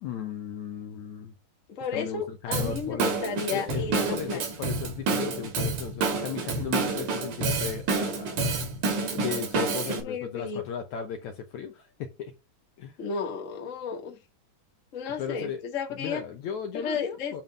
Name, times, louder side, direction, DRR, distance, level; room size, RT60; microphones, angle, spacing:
voice 1, 0.0-1.3 1.9-3.1 3.5-8.4 9.1-12.3 12.8-13.0 15.2-15.6 15.9-17.4, left 7 dB, 70° left, 1.9 m, -36 dB
voice 2, 1.7-4.4 9.5-10.6 13.0-14.1 14.9-16.2 16.7-17.4, left 6 dB, 35° left, 1.2 m, -33 dB
Drum kit / Drum, 2.5-10.0, right 3 dB, 65° right, 3.5 m, -29 dB
9.3 x 3.6 x 5.4 m
omnidirectional pair, 4.1 m